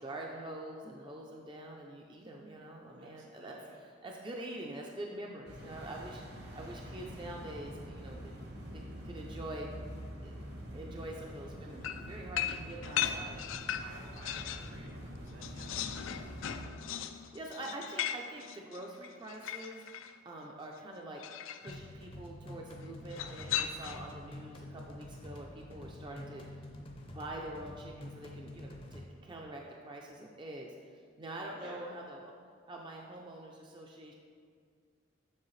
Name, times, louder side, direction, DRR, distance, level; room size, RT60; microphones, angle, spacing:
voice 1, 0.0-8.3 8.7-9.7 10.2-13.4 17.1-19.8 20.2-21.2 21.6-26.7 27.1-32.3 32.7-34.1, right 1 dB, 25° right, -1 dB, 0.4 m, -45 dB
voice 2, 3.0-3.8 13.8-15.7 31.6-31.8, right 1 dB, 75° right, -1 dB, 1.4 m, -53 dB
sound 1, 5.5-16.7, equal, 55° right, 1.0 m, -45 dB
sound 2, 11.8-14.7 15.1-20.1 21.2-21.8 23.1-24.2, left 10 dB, 75° left, 0.3 m, -38 dB
sound 3, 21.7-29.1, left 1 dB, 25° left, 0.5 m, -48 dB
7.3 x 6.4 x 3.2 m, 2.1 s
head